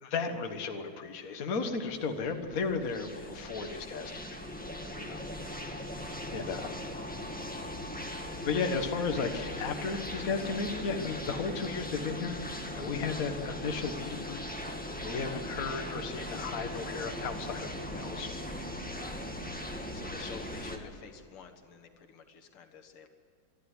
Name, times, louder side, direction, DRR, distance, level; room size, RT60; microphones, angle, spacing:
voice 1, 0.0-4.4 5.0-5.2 5.7-6.7 8.3-14.4 15.0-18.3, left 5 dB, 45° left, 5 dB, 1.7 m, -35 dB
sound 1, 1.7-20.8, left 1 dB, 5° left, 1.6 m, -39 dB
voice 2, 5.0-5.4 6.5-6.7 18.9-19.3 19.9-23.1, left 6 dB, 80° left, 6 dB, 2.4 m, -51 dB
26.0 x 11.5 x 9.8 m, 2.5 s
omnidirectional pair, 2.4 m